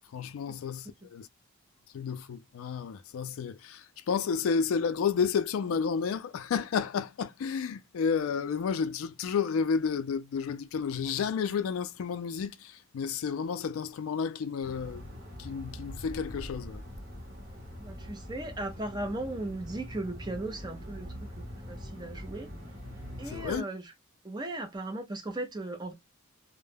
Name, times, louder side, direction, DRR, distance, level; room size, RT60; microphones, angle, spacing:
voice 1, 0.1-1.3 1.9-15.0 15.4-16.8 23.3-23.6, left 6 dB, 85° left, 0.3 m, -31 dB
sound 1, 14.6-23.6, equal, 45° right, 0.9 m, -43 dB
voice 2, 17.8-22.5 23.2-23.9 24.2-25.9, right 2 dB, 20° right, 0.5 m, -37 dB
2.2 x 2.0 x 3.2 m
head